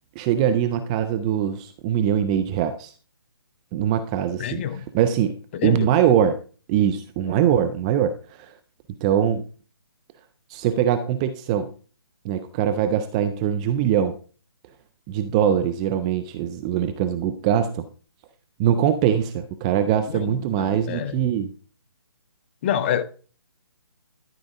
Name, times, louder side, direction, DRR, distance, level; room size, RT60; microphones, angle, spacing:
voice 1, 0.2-2.9 3.7-4.6 4.9-5.4 5.6-6.4 6.7-8.1 9.0-9.4 10.5-11.7 12.2-14.2 15.1-17.8 18.6-21.5, right 9 dB, 15° right, 0.4 m, -22 dB
voice 2, 4.4-4.9 5.5-5.9 7.3-7.4 20.1-21.2 22.6-23.0, left 9 dB, 25° left, 0.6 m, -27 dB
12.0 x 5.2 x 3.7 m
hypercardioid pair, 150°, 13 cm